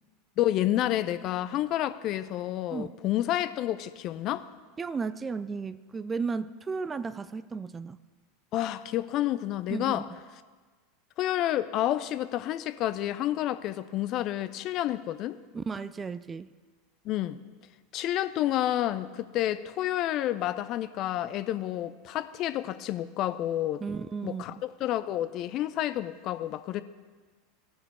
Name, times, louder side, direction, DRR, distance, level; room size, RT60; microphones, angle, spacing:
voice 1, 0.4-4.5 8.5-10.0 11.2-15.4 17.0-17.4 17.9-23.8 24.2-26.8, left 13 dB, 45° left, 13 dB, 0.4 m, -29 dB
voice 2, 4.8-8.0 9.7-10.0 15.5-16.5 23.8-24.6, right 5 dB, 20° right, 16 dB, 0.3 m, -34 dB
16.0 x 6.0 x 4.2 m, 1.4 s
figure-of-eight pair, 80°, 0 cm